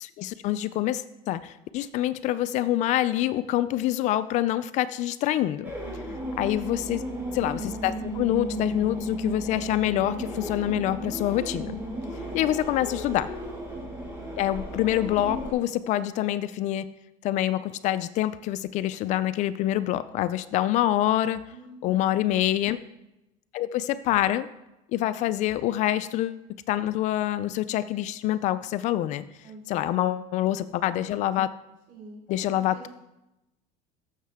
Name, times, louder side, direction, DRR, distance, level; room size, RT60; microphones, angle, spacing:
voice 1, 0.0-5.7 6.4-7.0 7.3-11.8 12.3-13.3 14.4-16.9 17.2-21.4 21.8-22.8 23.5-24.5 24.9-29.2 29.7-31.5 32.3-32.9, left 13 dB, 50° left, 15 dB, 0.4 m, -26 dB
sound 1, 5.6-15.5, equal, 10° right, 3.8 m, -34 dB
voice 2, 5.8-6.4 12.0-12.8 21.5-22.2 29.4-30.2 31.9-32.9, right 2 dB, 55° right, -2 dB, 3.9 m, -47 dB
14.0 x 6.5 x 3.5 m, 0.93 s
cardioid pair, 150°, 16 cm